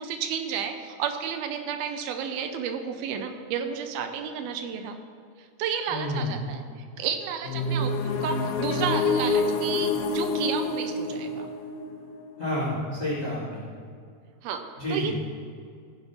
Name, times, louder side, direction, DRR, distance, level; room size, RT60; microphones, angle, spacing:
voice 1, 0.0-5.0 5.4-6.6 7.0-11.5 14.4-14.6 14.9-15.2, right 7 dB, 80° right, 6 dB, 2.6 m, -32 dB
voice 2, 5.9-6.3 12.4-13.6 14.8-15.1, left 1 dB, 20° left, -8 dB, 3.2 m, -29 dB
sound 1, 7.4-13.2, left 3 dB, 85° left, 3.1 m, -27 dB
15.5 x 9.9 x 3.2 m, 2.2 s
omnidirectional pair, 4.5 m